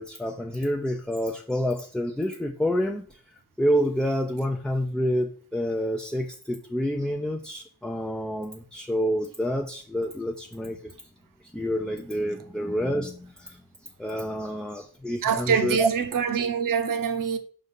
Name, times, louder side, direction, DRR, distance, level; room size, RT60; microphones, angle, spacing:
voice 1, 0.0-3.0 3.6-10.9 11.5-13.6 14.0-15.9, equal, ahead, 0.3 m, -28 dB
voice 2, 15.2-17.4, right 6 dB, 55° right, 0.9 m, -25 dB
5.4 x 3.9 x 5.3 m
cardioid pair, 125°, 39 cm